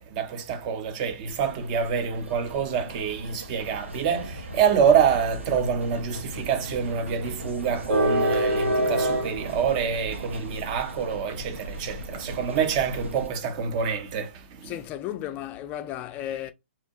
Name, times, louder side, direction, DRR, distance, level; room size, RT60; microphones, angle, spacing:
voice 1, 0.0-14.3 14.6-14.8, right 7 dB, 35° right, 0.5 m, -26 dB
sound 1, 1.3-13.3, right 1 dB, 90° right, 0.7 m, -31 dB
voice 2, 14.6-16.5, left 12 dB, 25° left, 0.3 m, -34 dB
2.7 x 2.0 x 2.6 m
figure-of-eight pair, 120°, 7 cm